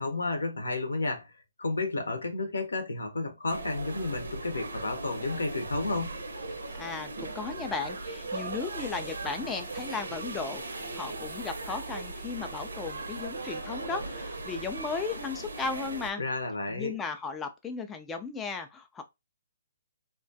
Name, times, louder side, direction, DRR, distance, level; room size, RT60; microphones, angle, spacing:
voice 1, 0.0-1.3 1.6-6.1 16.2-17.0, left 2 dB, 80° left, 0.7 m, -31 dB
sound 1, 3.5-16.1, right 3 dB, 80° right, 0.7 m, -38 dB
voice 2, 6.8-16.2 16.7-19.0, left 5 dB, 15° left, 0.3 m, -36 dB
2.3 x 2.2 x 2.5 m
figure-of-eight pair, 135°, 0 cm